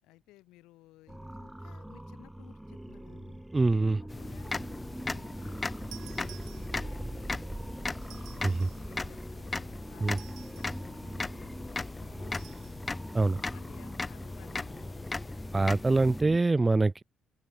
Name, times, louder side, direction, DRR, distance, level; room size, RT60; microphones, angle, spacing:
voice 1, 0.0-3.4 4.0-4.8 5.1-12.6 13.4-15.1, left 18 dB, 80° left, 5.7 m, -58 dB
sound 1, 1.1-16.4, right 1 dB, 10° right, 1.2 m, -42 dB
voice 2, 3.5-4.0 8.4-8.5 10.0-10.2 13.1-13.4 15.5-17.0, right 3 dB, 25° right, 0.5 m, -24 dB
sound 2, 4.1-16.2, left 3 dB, 30° left, 0.8 m, -38 dB
sound 3, 5.9-7.1 8.0-8.9 10.1-10.8 12.3-12.8, right 17 dB, 80° right, 3.9 m, -53 dB
open air
hypercardioid pair, 50°, 0 cm